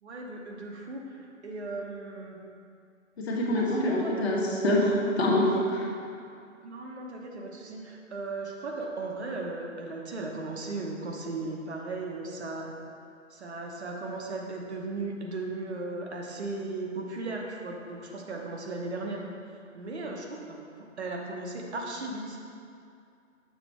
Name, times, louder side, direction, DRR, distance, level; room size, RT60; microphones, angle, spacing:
voice 1, 0.0-2.4 3.6-4.3 6.6-12.7 13.3-19.2 19.7-22.4, right 3 dB, 55° right, 0 dB, 1.0 m, -36 dB
voice 2, 3.2-5.9, left 1 dB, 55° left, -3 dB, 1.4 m, -25 dB
6.9 x 3.9 x 4.5 m, 2.5 s
hypercardioid pair, 160°, 38 cm